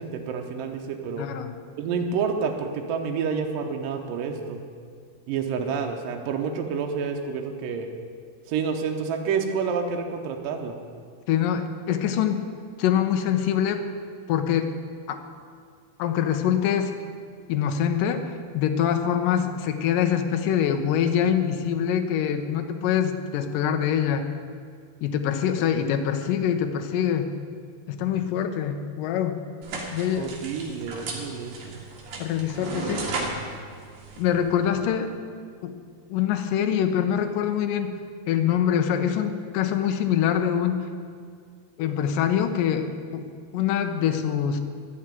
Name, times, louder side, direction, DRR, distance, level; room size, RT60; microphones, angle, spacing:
voice 1, 0.0-1.3 1.8-4.6 5.3-7.9 8.5-10.8 30.1-31.8, right 6 dB, 70° right, 3 dB, 2.3 m, -29 dB
voice 2, 1.2-1.5 11.3-12.4 12.8-13.9 14.3-14.7 15.1-15.2 16.0-16.9 17.5-24.3 25.0-27.3 27.9-29.4 29.9-30.3 32.2-33.2 34.2-35.1 35.6-35.8 36.1-37.9 38.3-40.8 41.8-43.3 43.5-44.6, left 9 dB, 75° left, 7 dB, 2.1 m, -24 dB
sound 1, 29.6-34.9, right 3 dB, 55° right, 2.7 m, -35 dB
12.0 x 7.2 x 9.1 m, 2.1 s
omnidirectional pair, 4.7 m